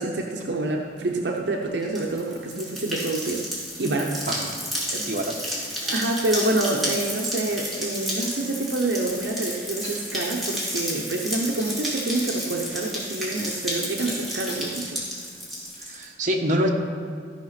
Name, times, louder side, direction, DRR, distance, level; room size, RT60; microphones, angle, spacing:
voice 1, 0.0-3.5 3.8-4.2 4.9-5.1 5.8-15.1, right 2 dB, 70° right, 1 dB, 0.8 m, -27 dB
sound 1, 1.8-16.0, equal, ahead, 2.9 m, -31 dB
sound 2, 2.1-2.4 3.1-4.0 4.3-4.5 4.8-5.7 6.1-6.2 6.4-12.1 12.3-15.1 15.6-15.9, left 1 dB, 25° left, 3.3 m, -45 dB
voice 2, 5.1-5.4 15.8-16.7, equal, 45° right, 1 dB, 1.2 m, -25 dB
14.5 x 5.8 x 5.8 m, 2.1 s
head